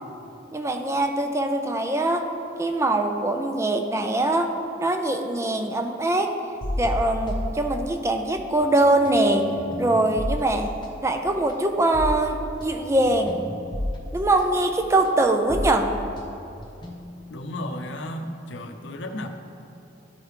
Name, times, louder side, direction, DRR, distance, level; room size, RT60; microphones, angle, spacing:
voice 1, 0.5-2.3 2.6-4.5 4.8-6.4 6.8-9.5 9.8-10.7 11.0-13.4 14.1-15.9, right 2 dB, 15° right, 5 dB, 0.4 m, -22 dB
sound 1, 6.6-8.3 8.6-17.3, left 1 dB, 25° left, 0.8 m, -33 dB
voice 2, 17.3-19.3, left 1 dB, 75° left, 6 dB, 0.6 m, -33 dB
12.0 x 4.8 x 3.2 m, 2.7 s
head